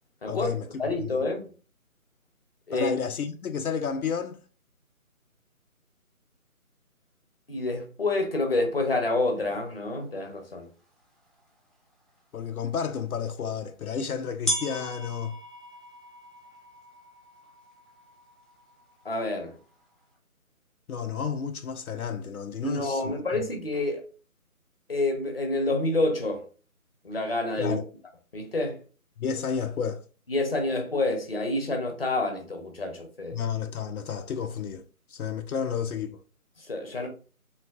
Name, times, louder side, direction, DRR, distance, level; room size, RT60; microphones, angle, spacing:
voice 1, 0.3-1.2 2.7-4.4 12.3-15.4 20.9-23.4 27.6-27.9 29.2-30.0 33.3-34.8 35.1-36.2, left 6 dB, 80° left, 0.5 m, -31 dB
voice 2, 0.8-1.5 2.7-2.9 7.5-10.7 19.0-19.6 22.6-24.0 24.9-26.5 27.0-27.8 28.3-28.8 30.3-33.4 36.6-37.1, left 2 dB, 45° left, 0.7 m, -28 dB
sound 1, 10.5-10.6 11.4-11.5 13.2-13.3 14.4-20.0, equal, ahead, 0.4 m, -37 dB
3.1 x 2.7 x 2.6 m
figure-of-eight pair, 175°, 43 cm